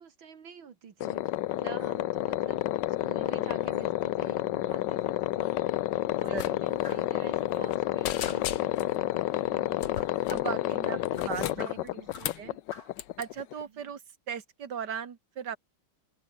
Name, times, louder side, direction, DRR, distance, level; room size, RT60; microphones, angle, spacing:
voice 1, 0.0-5.6 6.0-10.1 10.5-12.6 13.7-13.9, right 7 dB, 70° right, 2.6 m, -48 dB
sound 1, 1.0-13.6, left 15 dB, 70° left, 1.1 m, -30 dB
voice 2, 6.1-6.6 10.3-11.0 11.2-11.7 12.4-12.6 13.2-14.0 14.3-15.6, right 7 dB, 55° right, 2.5 m, -37 dB
sound 2, 6.3-6.5 6.8-7.0 7.4-7.8 8.0-9.0 9.8-10.5 11.1-12.5 13.0-13.3, left 11 dB, 90° left, 2.2 m, -37 dB
sound 3, 6.8-7.2 8.2-8.6 9.9-10.2 11.1-12.4 12.7-13.0, left 2 dB, 45° left, 5.4 m, -47 dB
omnidirectional pair, 2.3 m